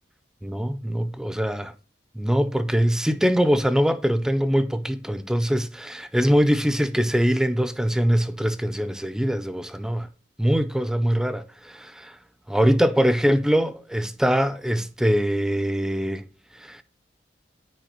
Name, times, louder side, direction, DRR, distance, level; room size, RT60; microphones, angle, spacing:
voice 1, 0.4-1.7 2.2-10.1 10.4-12.2 12.5-16.3 16.6-16.8, equal, 5° right, 0.4 m, -23 dB
9.2 x 4.6 x 2.9 m
head